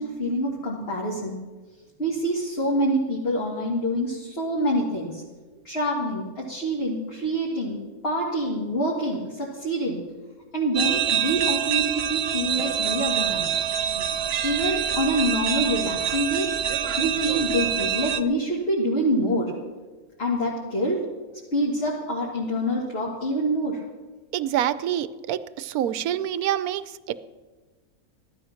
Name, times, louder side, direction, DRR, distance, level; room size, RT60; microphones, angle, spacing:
voice 1, 0.0-1.4 2.0-5.2 5.6-10.0 10.5-13.5 14.4-16.5 17.0-19.5 20.2-21.0 21.5-23.8, equal, 40° left, -3 dB, 2.1 m, -26 dB
sound 1, 10.7-18.2, right 8 dB, 55° right, 0.8 m, -26 dB
voice 2, 24.3-27.1, right 11 dB, 80° right, 14 dB, 1.1 m, -27 dB
15.5 x 12.0 x 5.8 m, 1.3 s
omnidirectional pair, 1.6 m